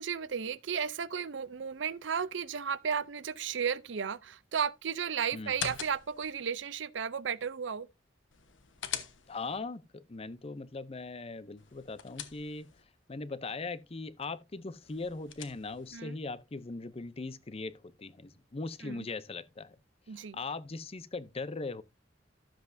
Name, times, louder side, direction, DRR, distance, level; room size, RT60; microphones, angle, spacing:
voice 1, 0.0-7.9 15.9-16.2 18.8-19.1 20.1-20.4, right 7 dB, 70° right, 0.5 m, -34 dB
sound 1, 5.4-6.3 8.3-9.6 11.6-12.8 14.8-15.9, left 9 dB, 85° left, 1.2 m, -42 dB
voice 2, 9.3-12.7 13.1-19.8 20.1-21.8, left 3 dB, 30° left, 0.6 m, -40 dB
13.0 x 7.5 x 2.6 m
head